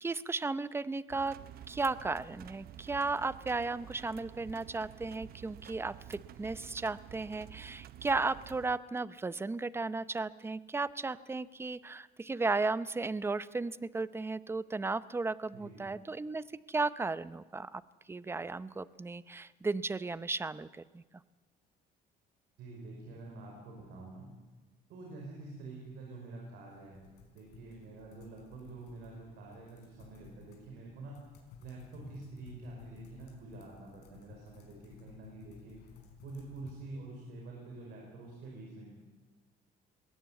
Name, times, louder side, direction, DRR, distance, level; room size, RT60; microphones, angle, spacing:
voice 1, 0.0-1.4 1.7-17.8 18.1-21.0, right 3 dB, 15° right, 16 dB, 0.7 m, -35 dB
sound 1, 1.1-8.8, right 11 dB, 65° right, 0.8 m, -51 dB
voice 2, 15.5-15.9 22.6-24.3 24.9-27.0 27.3-31.2 31.6-35.8 36.2-38.9, right 2 dB, 80° right, -1 dB, 5.5 m, -47 dB
sound 2, 26.7-36.7, left 7 dB, 85° left, 4.9 m, -56 dB
21.0 x 17.5 x 8.4 m, 1.2 s
cardioid pair, 110°, 17 cm